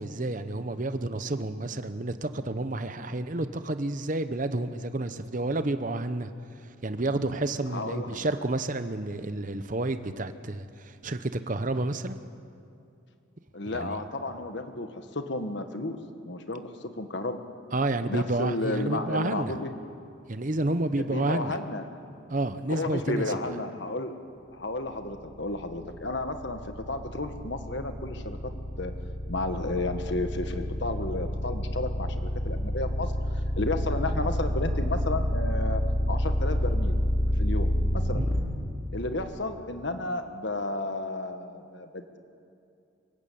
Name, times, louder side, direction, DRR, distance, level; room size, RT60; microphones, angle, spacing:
voice 1, 0.0-6.3 6.8-12.2 13.7-14.0 17.7-19.6 20.3-21.6 22.3-23.3 38.1-38.3, right 2 dB, 40° right, 10 dB, 0.8 m, -30 dB
voice 2, 7.7-8.3 13.5-16.0 16.2-16.7 17.0-17.4 18.1-19.7 21.0-21.9 22.7-24.1 24.5-26.6 26.9-28.5 28.8-28.9 29.3-33.1 33.6-35.8 36.1-37.0 37.4-38.2 38.9-42.2, left 2 dB, 55° left, 7 dB, 1.5 m, -32 dB
sound 1, 25.1-38.4, equal, 20° left, 2.6 m, -28 dB
24.0 x 14.0 x 8.6 m, 2.6 s
head